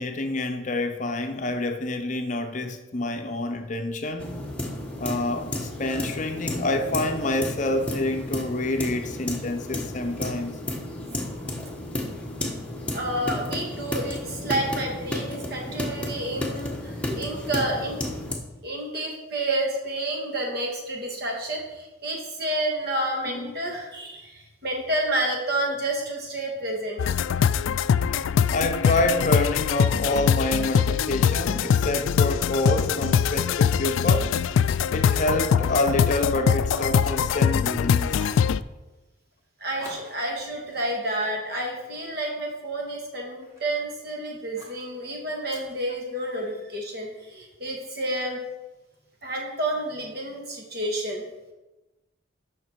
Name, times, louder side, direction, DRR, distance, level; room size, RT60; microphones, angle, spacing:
voice 1, 0.0-4.3 5.0-10.5 23.3-23.5 28.0-34.3 34.9-38.3, left 2 dB, 40° left, 0.6 m, -27 dB
sound 1, 4.2-18.4, left 1 dB, 5° left, 1.0 m, -32 dB
voice 2, 12.9-18.1 18.6-27.2 39.6-48.4 49.2-51.2, right 1 dB, 50° right, 1.9 m, -30 dB
sound 2, 27.0-38.6, left 7 dB, 80° left, 0.3 m, -22 dB
Fire, 32.7-36.4 36.6-37.7 38.1-38.5 39.8-42.2 42.7-43.8 44.6-44.9 45.5-46.6, equal, 15° right, 2.2 m, -48 dB
9.0 x 5.8 x 4.6 m
head